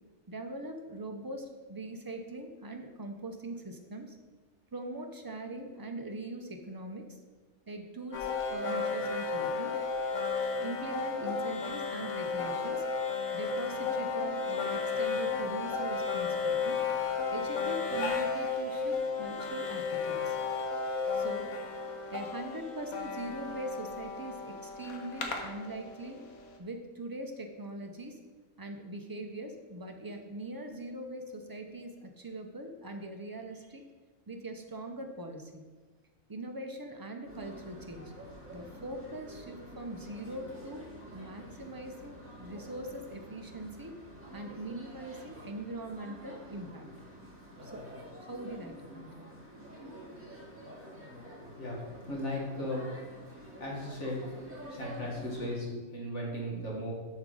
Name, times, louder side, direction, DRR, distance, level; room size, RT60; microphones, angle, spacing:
voice 1, 0.3-4.2 4.7-7.2 7.7-9.7 10.6-12.8 13.3-16.8 17.3-20.4 21.1-21.5 22.1-26.2 26.6-28.2 28.6-33.8 34.3-35.6 36.3-38.1 38.5-40.9 41.1-44.0 44.3-46.9 47.6-47.9 48.1-49.3, right 1 dB, 30° right, 4 dB, 0.4 m, -42 dB
sound 1, 8.1-26.1, left 4 dB, 90° left, 1.4 m, -33 dB
sound 2, 37.2-55.6, equal, 10° right, 2.1 m, -49 dB
voice 2, 51.4-51.8 52.1-52.8 53.3-54.2 54.7-56.9, left 1 dB, 60° left, -2 dB, 1.9 m, -36 dB
7.3 x 6.2 x 3.8 m, 1.3 s
omnidirectional pair, 1.4 m